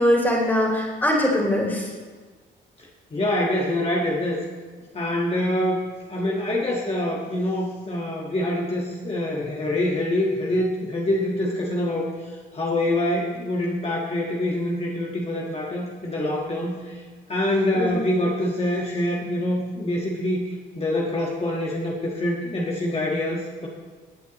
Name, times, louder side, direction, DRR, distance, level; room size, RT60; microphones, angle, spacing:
voice 1, 0.0-1.9 17.7-17.9, left 1 dB, 10° left, -2 dB, 3.3 m, -21 dB
voice 2, 2.8-4.4 4.9-17.0 17.3-20.4 20.7-23.7, left 1 dB, 30° left, -3 dB, 1.6 m, -25 dB
17.5 x 8.1 x 3.1 m, 1.4 s
cardioid pair, 90°, 20 cm